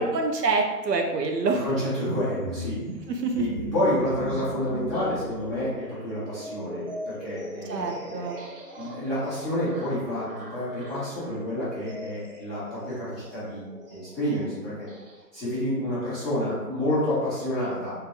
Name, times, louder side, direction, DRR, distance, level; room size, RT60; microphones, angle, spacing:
voice 1, 0.0-1.7 3.1-3.4 7.6-8.4, right 3 dB, 75° right, 3 dB, 0.6 m, -26 dB
voice 2, 1.6-2.8 3.3-8.3 8.8-14.9 15.3-17.9, left 1 dB, ahead, -17 dB, 1.1 m, -29 dB
sound 1, 2.0-15.2, right 1 dB, 35° right, 0.6 m, -39 dB
3.7 x 2.6 x 2.7 m, 1.2 s
figure-of-eight pair, 135°, 49 cm